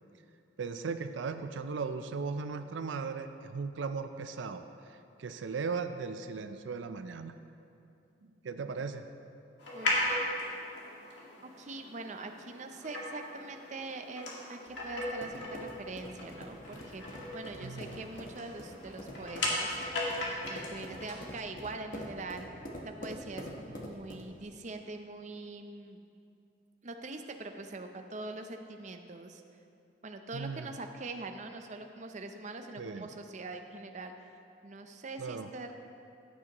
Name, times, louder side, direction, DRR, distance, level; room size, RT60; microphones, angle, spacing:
voice 1, 0.6-7.4 8.4-9.1 17.6-17.9 30.3-30.7 32.8-33.1 35.2-35.5, right 5 dB, 85° right, 8 dB, 0.5 m, -37 dB
sound 1, 9.6-21.1, left 1 dB, 70° left, 2.2 m, -37 dB
voice 2, 9.7-10.3 11.6-20.0 20.4-22.5 22.8-26.0 26.8-29.4 30.0-34.1 34.6-35.7, right 3 dB, 40° right, 5 dB, 0.6 m, -43 dB
sound 2, 14.7-24.4, equal, 50° left, 1.1 m, -46 dB
16.0 x 8.5 x 3.0 m, 2.6 s
head